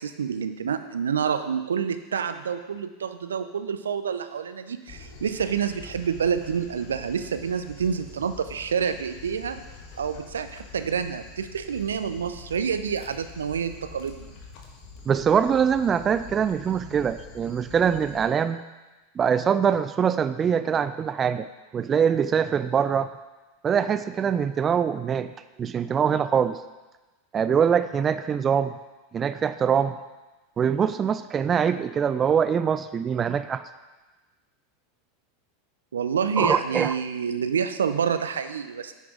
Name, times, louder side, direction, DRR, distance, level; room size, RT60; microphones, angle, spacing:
voice 1, 0.0-9.6 10.0-14.3 35.9-38.9, right 7 dB, 80° right, 10 dB, 0.5 m, -28 dB
Dog, 4.9-18.2, left 4 dB, 55° left, 1.5 m, -46 dB
voice 2, 15.1-18.6 19.2-21.5 21.7-23.1 23.6-25.3 25.6-26.6 27.3-28.7 29.1-30.0 30.6-33.6 36.4-36.9, right 7 dB, 30° right, 12 dB, 0.4 m, -23 dB
9.6 x 5.9 x 4.8 m, 1.2 s
figure-of-eight pair, 90°, 0 cm